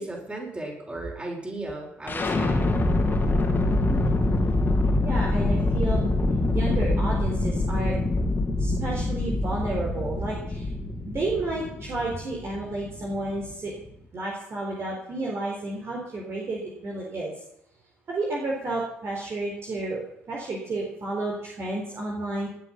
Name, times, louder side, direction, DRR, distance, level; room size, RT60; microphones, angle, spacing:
voice 1, 0.0-2.6, right 2 dB, 20° right, 0 dB, 6.8 m, -36 dB
sound 1, 2.1-13.9, left 2 dB, 30° left, 3.3 m, -25 dB
voice 2, 5.0-6.0 6.5-8.0 8.6-10.7 11.1-13.7 14.1-17.3 18.1-20.0 20.3-22.5, right 2 dB, 40° right, -2 dB, 4.1 m, -31 dB
19.5 x 9.4 x 5.9 m, 0.77 s
figure-of-eight pair, 45°, 6 cm